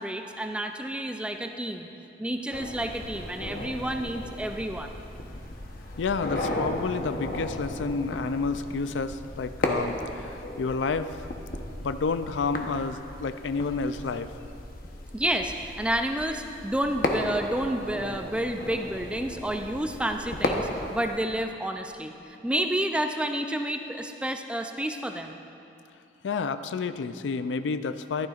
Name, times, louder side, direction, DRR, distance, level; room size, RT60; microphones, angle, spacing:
voice 1, 0.0-1.9 2.2-4.9 15.1-25.4, right 1 dB, 5° right, 5 dB, 0.4 m, -30 dB
sound 1, 2.5-21.2, left 1 dB, 50° left, 0.9 m, -35 dB
voice 2, 6.0-11.3 11.8-14.3 26.2-28.3, left 4 dB, 85° left, 11 dB, 0.4 m, -30 dB
14.5 x 12.0 x 2.5 m, 2.7 s
head